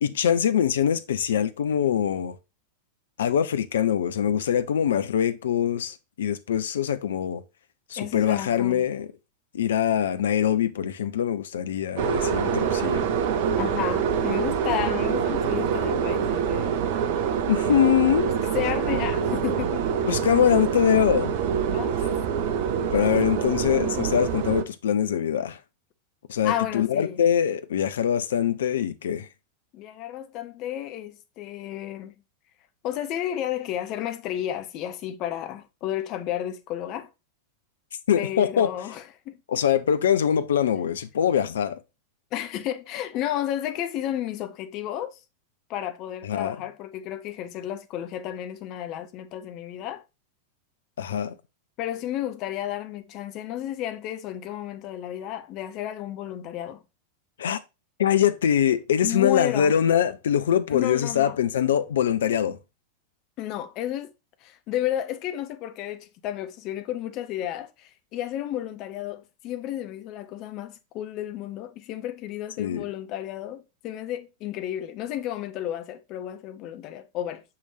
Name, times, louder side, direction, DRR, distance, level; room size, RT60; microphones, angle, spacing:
voice 1, 0.0-2.3 3.2-7.4 7.9-9.1 9.5-13.1 17.5-18.3 20.1-21.4 22.9-25.6 26.3-29.3 38.1-38.7 39.5-41.8 46.2-46.6 51.0-51.4 57.4-57.6 58.0-62.6 72.6-72.9, left 9 dB, 65° left, 0.7 m, -23 dB
voice 2, 8.0-8.9 13.6-16.8 18.5-19.9 21.7-22.0 26.4-27.2 29.7-32.1 32.8-37.1 38.2-39.4 42.3-45.2 45.7-50.0 51.8-56.8 59.0-59.7 60.7-61.4 63.4-64.1 64.4-77.4, left 12 dB, 40° left, 0.9 m, -32 dB
sound 1, 12.0-24.6, right 7 dB, 50° right, 0.8 m, -25 dB
6.3 x 5.7 x 2.7 m
figure-of-eight pair, 90°, 0 cm